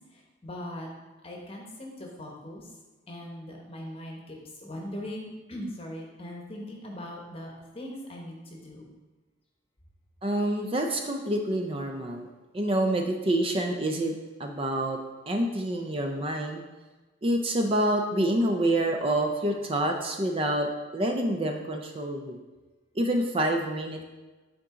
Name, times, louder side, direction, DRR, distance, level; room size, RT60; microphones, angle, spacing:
voice 1, 0.1-0.9 1.2-2.7 3.1-8.9, left 1 dB, 30° left, 0 dB, 0.9 m, -40 dB
voice 2, 10.2-12.3 12.5-14.1 14.4-15.0 15.3-16.6 17.2-22.4 23.0-24.0, right 1 dB, 25° right, 3 dB, 0.5 m, -27 dB
8.6 x 3.9 x 3.6 m, 1.2 s
head